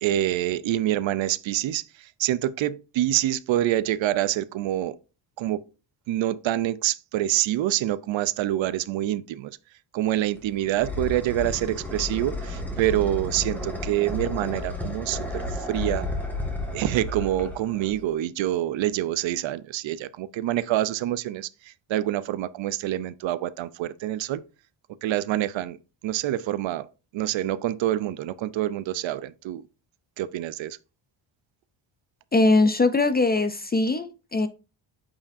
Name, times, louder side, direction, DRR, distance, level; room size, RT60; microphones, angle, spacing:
voice 1, 0.0-5.0 5.4-5.6 6.1-9.6 9.9-16.1 16.7-24.4 25.0-25.8 26.0-26.9 27.1-29.6 30.2-30.8, right 13 dB, 70° right, 0.6 m, -26 dB
sound 1, 10.2-18.1, left 1 dB, 5° left, 1.6 m, -32 dB
voice 2, 32.3-34.5, left 2 dB, 25° left, 0.3 m, -21 dB
8.5 x 4.9 x 2.6 m
cardioid pair, 135°, 47 cm